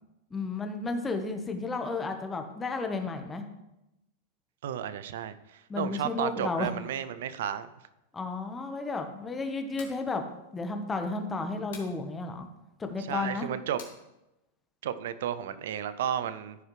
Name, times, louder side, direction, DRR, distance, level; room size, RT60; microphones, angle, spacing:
voice 1, 0.3-3.4 5.7-6.7 8.1-10.2 10.5-12.5 12.8-13.5, left 3 dB, 15° left, 6 dB, 1.2 m, -32 dB
voice 2, 4.6-7.7 13.0-13.8 14.8-16.6, right 10 dB, 70° right, 14 dB, 0.6 m, -33 dB
sound 1, 9.7-10.0 11.7-12.0 13.8-14.0, left 5 dB, 70° left, 2.1 m, -47 dB
14.0 x 4.8 x 3.2 m, 0.93 s
hypercardioid pair, 105°, 0 cm